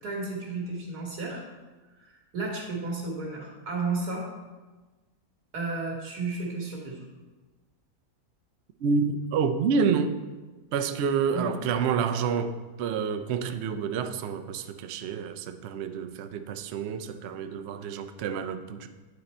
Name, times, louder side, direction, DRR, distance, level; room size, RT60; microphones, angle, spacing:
voice 1, 0.0-1.4 2.0-4.3 5.5-7.0 11.3-11.5, right 3 dB, 85° right, -1 dB, 2.0 m, -33 dB
voice 2, 8.8-10.2 10.7-18.9, right 6 dB, 70° right, 8 dB, 0.6 m, -28 dB
9.6 x 3.9 x 4.2 m, 1.2 s
omnidirectional pair, 1.6 m